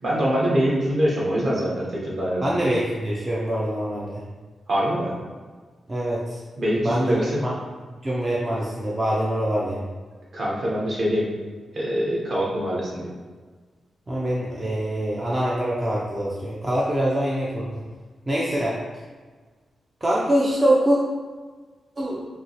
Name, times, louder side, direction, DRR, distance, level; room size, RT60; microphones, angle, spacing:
voice 1, 0.0-2.4 4.7-5.1 6.6-7.4 10.3-11.2 11.7-13.1, equal, 40° right, -5 dB, 1.1 m, -24 dB
voice 2, 2.4-4.2 5.9-6.4 6.8-7.5 8.0-9.8 14.1-17.8 18.3-18.8 20.0-21.0 22.0-22.2, right 1 dB, 15° right, -5 dB, 0.5 m, -24 dB
5.7 x 2.7 x 2.9 m, 1.4 s
wide cardioid pair, 180°, 0 cm